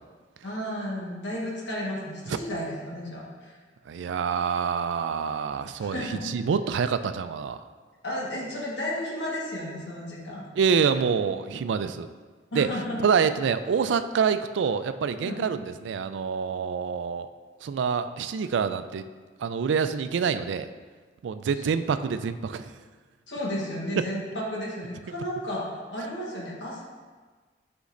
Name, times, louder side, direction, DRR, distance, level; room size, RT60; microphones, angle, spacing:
voice 1, 0.4-3.6 5.8-6.2 8.0-10.4 12.5-13.0 15.2-15.4 23.3-26.8, equal, 70° left, -4 dB, 1.3 m, -33 dB
voice 2, 3.9-7.6 10.6-12.1 12.6-12.7 13.0-17.3 17.6-19.1 19.4-20.7 21.2-22.7, right 6 dB, 75° right, 11 dB, 0.3 m, -26 dB
8.3 x 5.2 x 2.5 m, 1.4 s
head